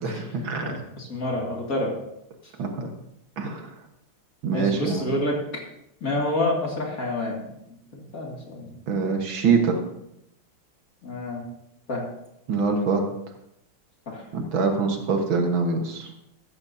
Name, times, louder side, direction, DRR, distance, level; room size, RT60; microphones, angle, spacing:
voice 1, 0.0-0.8 2.6-2.9 3.4-3.7 4.4-5.1 8.9-9.8 12.5-13.1 14.3-16.1, right 4 dB, 65° right, 3 dB, 2.1 m, -24 dB
voice 2, 0.6-1.9 4.5-5.4 6.0-7.5 8.1-8.7 11.0-11.5 11.9-12.1 14.1-14.2, left 1 dB, 40° left, -1 dB, 2.6 m, -28 dB
15.0 x 13.0 x 2.7 m, 0.81 s
omnidirectional pair, 2.4 m